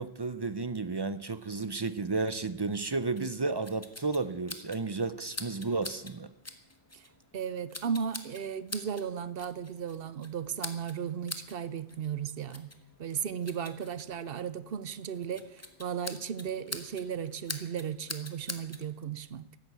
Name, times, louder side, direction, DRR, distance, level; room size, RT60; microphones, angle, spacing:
voice 1, 0.0-6.3, right 3 dB, 35° right, 0.4 m, -32 dB
sound 1, 3.2-18.9, left 1 dB, 15° left, 1.2 m, -46 dB
voice 2, 7.3-12.7 13.0-19.4, right 7 dB, 65° right, 0.9 m, -35 dB
14.5 x 11.0 x 8.1 m
omnidirectional pair, 1.1 m